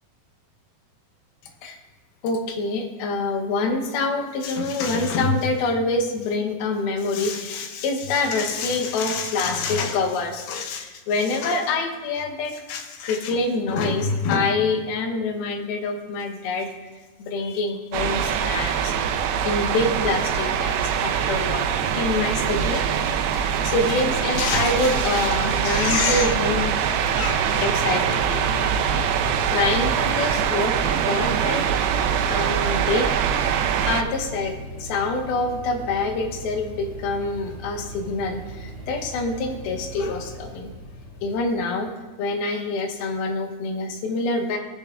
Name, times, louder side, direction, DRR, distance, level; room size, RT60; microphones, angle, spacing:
voice 1, 2.2-16.7 17.2-18.9 19.5-21.7 21.9-22.9 23.2-26.7 27.1-28.4 29.5-33.1 33.9-40.7 41.2-41.9 42.2-44.6, left 3 dB, 75° left, 4 dB, 2.7 m, -26 dB
sound 1, 17.9-34.0, right 8 dB, 85° right, 2.5 m, -23 dB
sound 2, 25.1-42.3, equal, 40° left, 3.4 m, -38 dB
19.5 x 6.8 x 2.4 m, 1.3 s
omnidirectional pair, 4.5 m